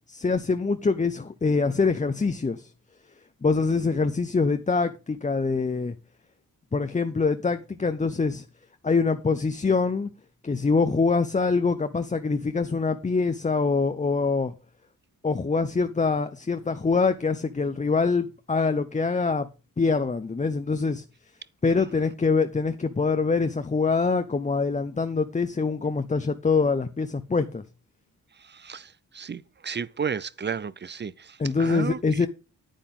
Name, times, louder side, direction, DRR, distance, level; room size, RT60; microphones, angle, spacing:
voice 1, 0.1-2.7 3.4-6.0 6.7-8.4 8.8-10.1 10.4-14.5 15.2-19.5 19.8-21.0 21.6-27.6 31.4-32.3, left 4 dB, 20° left, 0.7 m, -24 dB
voice 2, 28.4-32.0, right 6 dB, 30° right, 0.5 m, -33 dB
10.0 x 9.9 x 3.7 m
wide cardioid pair, 130°, 35 cm